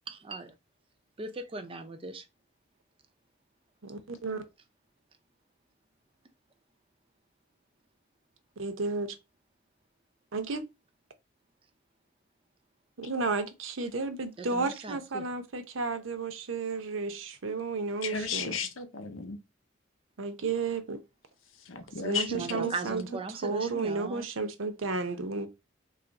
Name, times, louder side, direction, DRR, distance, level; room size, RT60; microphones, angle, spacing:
voice 1, 0.1-0.5 1.2-2.3 14.4-15.2 22.1-24.3, right 3 dB, 30° right, 0.5 m, -38 dB
voice 2, 3.8-4.4 8.6-9.1 10.3-10.6 13.0-18.6 20.2-21.0 22.0-23.0 23.4-25.5, right 4 dB, 75° right, 0.7 m, -32 dB
voice 3, 18.0-19.4 21.7-22.7, left 5 dB, 80° left, 0.7 m, -34 dB
3.3 x 2.4 x 4.0 m
head